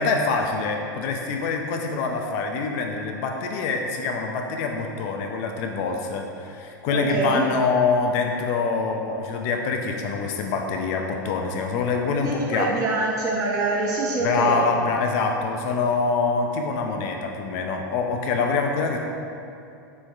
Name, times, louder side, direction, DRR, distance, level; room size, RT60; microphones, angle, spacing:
voice 1, 0.0-12.7 14.2-19.0, left 4 dB, 50° left, 2 dB, 0.4 m, -25 dB
voice 2, 6.9-7.4 12.2-14.6, right 2 dB, 30° right, -6 dB, 0.5 m, -25 dB
4.2 x 3.1 x 2.3 m, 2.6 s
hypercardioid pair, 105°, 11 cm